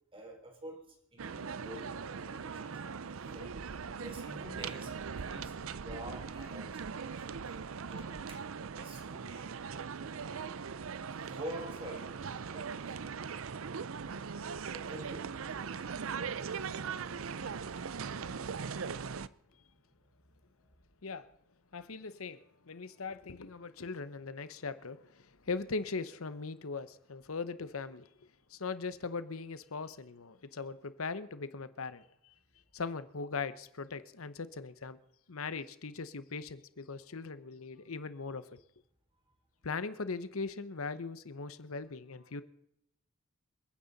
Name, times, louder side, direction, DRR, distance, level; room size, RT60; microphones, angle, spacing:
voice 1, 0.1-7.6 7.8-9.5 11.1-13.0 14.7-15.9, right 1 dB, 25° right, 4.2 m, -48 dB
sound 1, 1.2-19.3, right 6 dB, 70° right, 0.6 m, -40 dB
voice 2, 21.7-22.4 22.6-28.1 28.5-32.3 32.7-35.0 35.3-38.6 39.6-42.4, left 4 dB, 85° left, 0.9 m, -40 dB
28.5 x 9.7 x 4.1 m
head